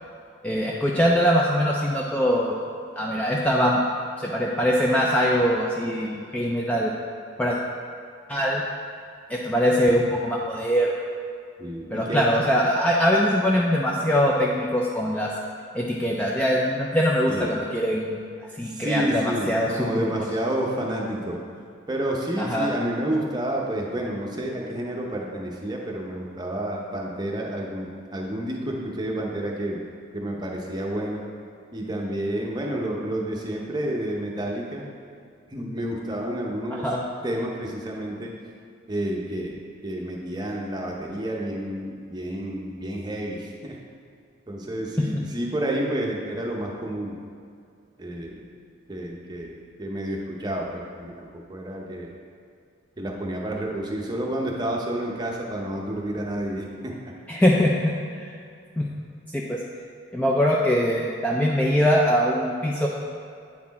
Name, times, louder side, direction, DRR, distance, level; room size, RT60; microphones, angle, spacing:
voice 1, 0.4-2.6 3.0-3.8 4.2-6.9 7.4-7.6 8.3-8.6 9.3-10.9 11.9-15.3 15.7-18.2 18.6-20.1 22.4-22.7 36.7-37.0 45.0-45.2 57.3-57.9 58.2-58.3 58.8-58.9 59.3-59.6 60.1-62.9, equal, 5° left, -3 dB, 0.3 m, -22 dB
voice 2, 11.6-12.2 17.3-17.5 18.6-21.3 21.9-29.8 30.1-31.2 31.7-34.9 35.5-37.0 37.2-38.3 38.9-43.8 44.5-47.2 48.0-48.4 48.9-52.1 53.0-57.1, right 1 dB, 20° right, -1 dB, 0.7 m, -30 dB
8.5 x 4.2 x 4.1 m, 2.3 s
head